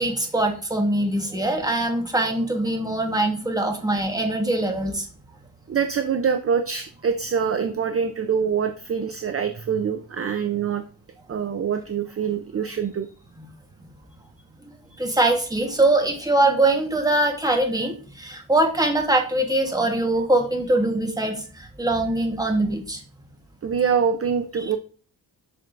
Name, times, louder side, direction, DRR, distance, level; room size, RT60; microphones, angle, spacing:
voice 1, 0.0-5.1 15.0-23.0, right 2 dB, 10° right, 3 dB, 1.2 m, -22 dB
voice 2, 5.7-10.8 11.3-13.1 14.9-15.0 23.6-24.8, right 7 dB, 35° right, 8 dB, 0.5 m, -25 dB
7.7 x 5.9 x 2.5 m, 0.39 s
wide cardioid pair, 135°, 40 cm